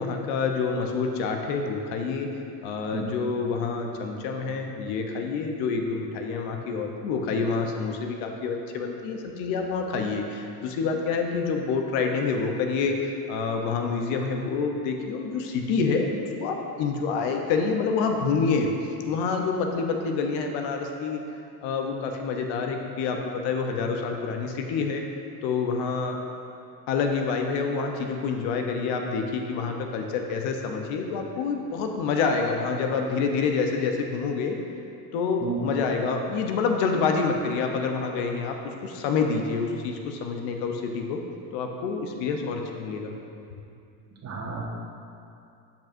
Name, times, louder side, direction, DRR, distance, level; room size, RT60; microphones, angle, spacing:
voice 1, 0.0-2.3 2.6-18.7 19.1-21.2 21.6-25.0 25.4-26.2 26.9-34.6 35.1-41.2 41.5-43.1, left 5 dB, 70° left, 3 dB, 0.9 m, -27 dB
voice 2, 44.2-44.6, right 6 dB, 35° right, -3 dB, 1.5 m, -32 dB
11.5 x 5.4 x 2.6 m, 2.6 s
supercardioid pair, 85°, 48 cm